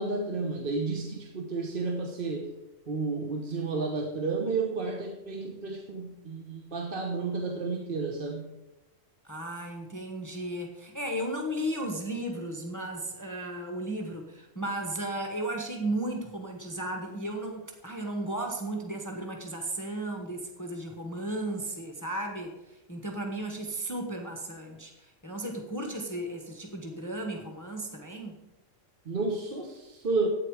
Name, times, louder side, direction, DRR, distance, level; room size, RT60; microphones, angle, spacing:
voice 1, 0.0-2.6 2.9-8.5 29.0-30.3, right 3 dB, 45° right, 2 dB, 1.2 m, -31 dB
voice 2, 9.2-28.4, right 1 dB, 15° left, 2 dB, 1.2 m, -35 dB
12.0 x 8.9 x 4.8 m, 0.97 s
omnidirectional pair, 1.3 m